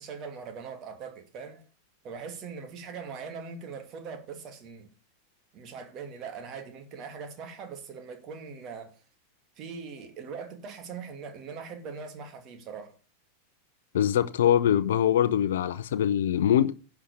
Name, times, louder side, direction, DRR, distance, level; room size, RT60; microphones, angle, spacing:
voice 1, 0.0-1.6 2.0-4.9 5.5-9.0 9.6-13.0, right 5 dB, 35° right, 2.5 m, -41 dB
voice 2, 13.9-16.7, left 10 dB, 60° left, 0.7 m, -23 dB
11.0 x 6.0 x 6.9 m
figure-of-eight pair, 90°, 0 cm